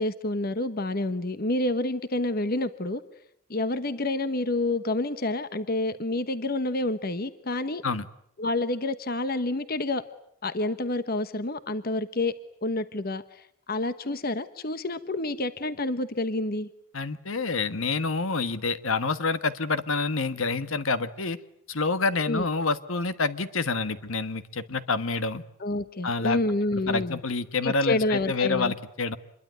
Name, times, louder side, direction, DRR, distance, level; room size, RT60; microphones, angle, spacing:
voice 1, 0.0-3.0 3.5-7.8 8.4-10.0 10.4-12.3 12.6-16.7 22.3-22.4 25.6-27.2 27.6-28.7, left 2 dB, 45° left, 12 dB, 1.1 m, -28 dB
voice 2, 16.9-21.4 21.7-25.4 26.0-26.4 26.7-29.2, left 4 dB, 70° left, 12 dB, 1.4 m, -27 dB
27.0 x 22.5 x 9.5 m, 0.72 s
head